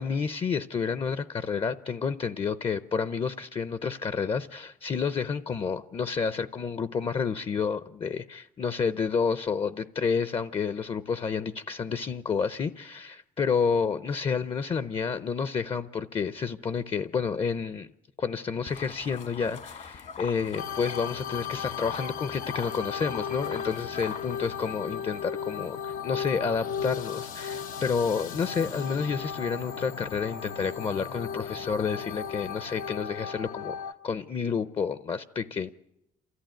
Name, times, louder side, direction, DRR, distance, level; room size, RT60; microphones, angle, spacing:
voice 1, 0.0-17.9 18.2-33.8 34.0-35.7, left 5 dB, 40° left, 0.7 m, -30 dB
sound 1, 18.7-24.7, left 6 dB, 60° left, 1.6 m, -42 dB
sound 2, 20.6-33.9, left 7 dB, 85° left, 1.0 m, -36 dB
27.5 x 14.5 x 9.1 m
cardioid pair, 85°, 14 cm